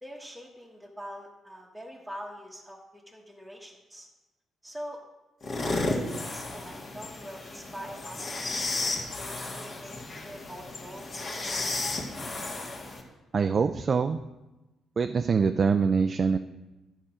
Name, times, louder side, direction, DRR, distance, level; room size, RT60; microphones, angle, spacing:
voice 1, 0.0-4.1 4.6-5.0 5.5-11.9, equal, ahead, -3 dB, 1.2 m, -44 dB
sound 1, 5.4-13.0, left 2 dB, 45° left, 1.7 m, -33 dB
voice 2, 13.3-14.2 15.0-16.4, right 5 dB, 40° right, 8 dB, 0.4 m, -24 dB
11.0 x 5.8 x 5.0 m, 1.1 s
cardioid pair, 90°, 0 cm